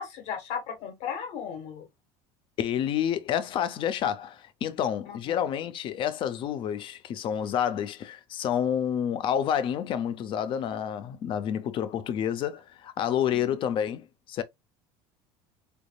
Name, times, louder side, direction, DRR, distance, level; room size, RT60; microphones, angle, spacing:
voice 1, 0.0-1.9 5.0-5.2, left 7 dB, 65° left, 1.7 m, -36 dB
voice 2, 2.6-14.4, left 9 dB, 45° left, 0.6 m, -29 dB
4.0 x 3.5 x 2.3 m
cardioid pair, 135°, 12 cm